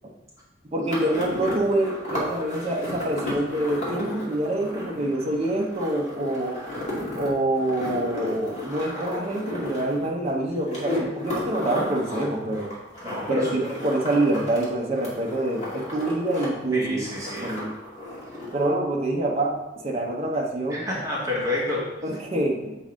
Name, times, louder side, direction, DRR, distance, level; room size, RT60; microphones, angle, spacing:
voice 1, 0.7-6.6 7.1-12.7 13.3-17.0 17.4-17.8 18.5-19.5 19.8-20.9 22.0-22.8, right 1 dB, 35° right, -1 dB, 0.9 m, -26 dB
sound 1, 0.9-14.6 14.9-16.5 16.7-18.7, left 1 dB, 40° left, 2.0 m, -34 dB
voice 2, 13.0-13.7 16.7-17.5 20.7-21.8, left 2 dB, 20° right, -5 dB, 1.5 m, -28 dB
7.2 x 4.0 x 3.8 m, 0.97 s
head